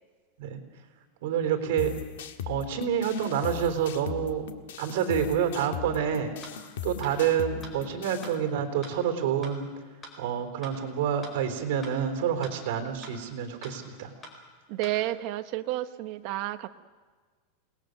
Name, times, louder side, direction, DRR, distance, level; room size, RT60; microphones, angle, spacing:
voice 1, 1.2-1.9 2.5-4.4 4.8-6.3 6.8-9.7 10.2-14.1, right 8 dB, 65° right, 6 dB, 3.7 m, -28 dB
sound 1, 1.8-8.4, left 9 dB, 85° left, 1.7 m, -39 dB
sound 2, 6.4-6.5 7.0-7.1 7.6-7.7 8.2-8.3 8.8-8.9 9.4-9.5 10.0-10.1 10.6-10.7 11.2-11.3 11.8-11.9 12.4-12.5 13.0-13.1 13.6-13.7 14.2-14.3 14.8-14.9, left 1 dB, 15° left, 4.3 m, -44 dB
voice 2, 14.7-16.7, right 15 dB, 45° right, 9 dB, 1.1 m, -31 dB
28.5 x 20.0 x 6.6 m, 1.4 s
supercardioid pair, 160°, 0 cm